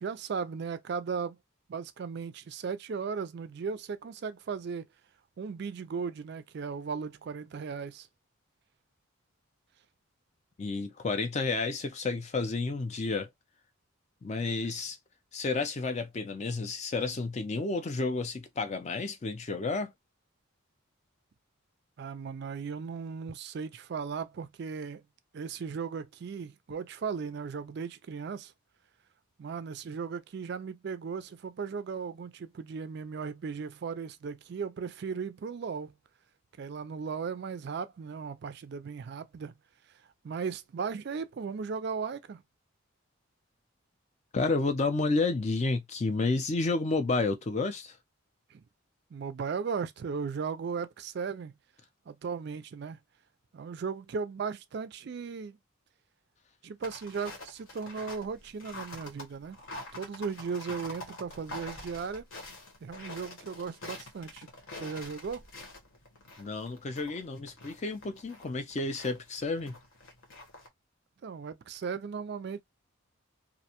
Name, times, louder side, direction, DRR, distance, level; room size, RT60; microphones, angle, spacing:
voice 1, 0.0-1.4 1.7-4.9 5.4-8.1 22.0-25.0 25.3-28.5 29.4-35.9 36.6-39.5 40.2-42.4 48.5-48.6 49.1-51.5 52.1-53.0 53.5-55.6 56.6-59.6 59.9-62.2 62.8-64.5 64.7-65.4 71.2-72.6, right 5 dB, 50° right, 0.3 m, -36 dB
voice 2, 10.6-13.3 14.2-15.0 15.3-19.9 44.3-48.0 66.4-69.8, left 3 dB, 30° left, 0.4 m, -31 dB
sound 1, 56.8-70.7, left 2 dB, 65° left, 1.0 m, -46 dB
2.5 x 2.1 x 2.8 m
head